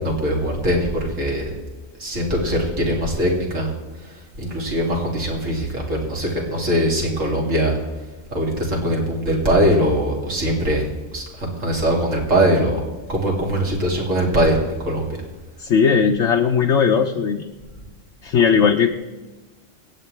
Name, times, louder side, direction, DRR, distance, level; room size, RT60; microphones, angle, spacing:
voice 1, 0.0-1.5 2.0-3.7 4.4-7.7 8.3-10.9 11.1-12.8 13.1-15.2, equal, 75° right, -1 dB, 2.9 m, -21 dB
voice 2, 15.6-17.5 18.2-18.9, left 6 dB, 70° left, 3 dB, 1.0 m, -17 dB
25.0 x 9.1 x 3.3 m, 1.2 s
omnidirectional pair, 1.3 m